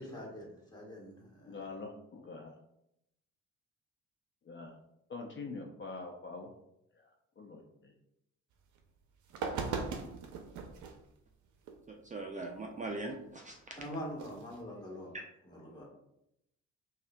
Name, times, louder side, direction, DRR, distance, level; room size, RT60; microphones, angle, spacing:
voice 1, 0.0-1.6 13.8-15.1 15.4-15.9, equal, 15° left, -3 dB, 1.4 m, -44 dB
voice 2, 1.5-2.5 4.4-4.7 5.1-6.5 6.9-7.1 7.4-7.9, left 3 dB, 40° left, 1 dB, 0.6 m, -44 dB
sound 1, 8.8-8.9 9.3-11.0 11.7-11.8 14.1-14.6, right 5 dB, 75° right, 0.6 m, -38 dB
voice 3, 11.9-13.6 15.1-15.2, right 2 dB, 25° right, 1 dB, 0.4 m, -41 dB
5.5 x 2.4 x 2.2 m, 0.81 s
cardioid pair, 90°, 30 cm